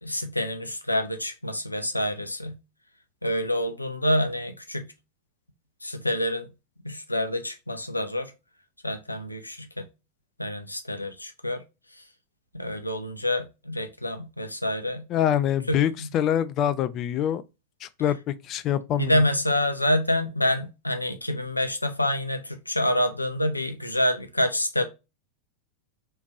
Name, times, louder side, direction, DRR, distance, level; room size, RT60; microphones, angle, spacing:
voice 1, 0.0-2.5 3.2-4.8 5.8-6.5 6.8-8.3 8.8-9.9 10.4-11.6 12.5-15.0 15.7-16.1 19.0-24.8, left 1 dB, 85° left, 0.6 m, -27 dB
voice 2, 15.1-17.4 17.8-19.2, left 10 dB, 35° left, 0.3 m, -25 dB
3.3 x 3.1 x 2.4 m
figure-of-eight pair, 90°, 0 cm